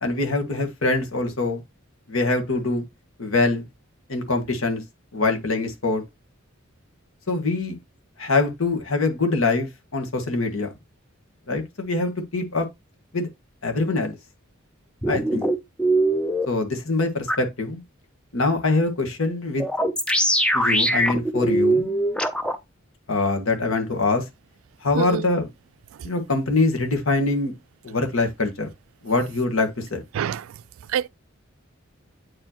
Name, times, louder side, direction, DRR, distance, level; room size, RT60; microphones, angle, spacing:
voice 1, 0.0-1.6 2.1-2.8 3.2-3.6 4.1-4.8 5.1-6.0 7.3-7.7 8.2-10.7 11.5-12.7 13.1-13.3 13.6-14.2 15.1-15.5 16.5-17.8 18.3-19.7 20.5-21.9 23.1-24.2 24.8-25.5 26.0-27.5 27.8-28.7 29.0-30.0, left 3 dB, 80° left, 1.5 m, -24 dB
sound 1, 15.0-16.5 17.3-17.4 19.6-22.6, right 1 dB, 5° left, 0.6 m, -21 dB
voice 2, 24.9-25.3 30.1-30.5 30.9-31.1, right 8 dB, 80° right, 0.3 m, -26 dB
8.4 x 4.7 x 3.0 m
head